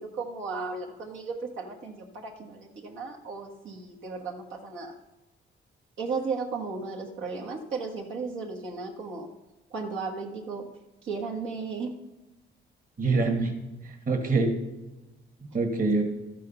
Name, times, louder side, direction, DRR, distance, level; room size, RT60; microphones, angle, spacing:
voice 1, 0.0-4.9 6.0-9.3 9.7-10.7 11.0-12.0, right 4 dB, 80° right, -2 dB, 1.7 m, -35 dB
voice 2, 13.0-13.5 13.8-14.5 15.4-16.0, right 3 dB, 45° right, 4 dB, 1.9 m, -25 dB
13.0 x 6.2 x 5.8 m, 1.0 s
cardioid pair, 90°, 20 cm